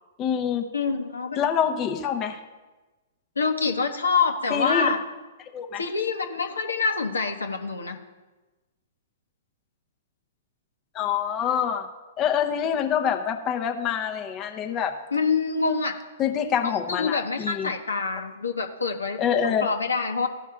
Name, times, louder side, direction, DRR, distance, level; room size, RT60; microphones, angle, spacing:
voice 1, 0.2-0.7 1.4-2.4 4.5-4.9 5.5-5.8 10.9-11.9 12.2-14.9 16.2-17.7 19.2-19.7, left 8 dB, 30° left, 5 dB, 0.7 m, -26 dB
voice 2, 0.7-1.5 3.4-5.0 5.8-8.0 15.1-15.9 16.6-20.3, left 4 dB, 80° left, 5 dB, 0.9 m, -26 dB
15.5 x 5.5 x 3.7 m, 1.2 s
figure-of-eight pair, 110°, 0 cm